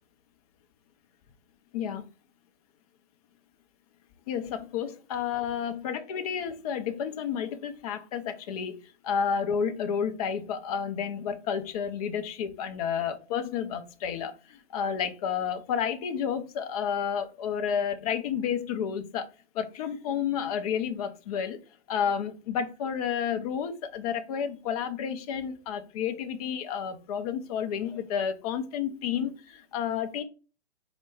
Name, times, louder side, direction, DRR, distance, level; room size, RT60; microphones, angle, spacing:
voice 1, 1.7-2.0 4.3-19.3 19.5-21.6 21.9-30.2, left 7 dB, 35° left, 0.6 m, -31 dB
4.6 x 2.2 x 4.3 m
hypercardioid pair, 130°, 35 cm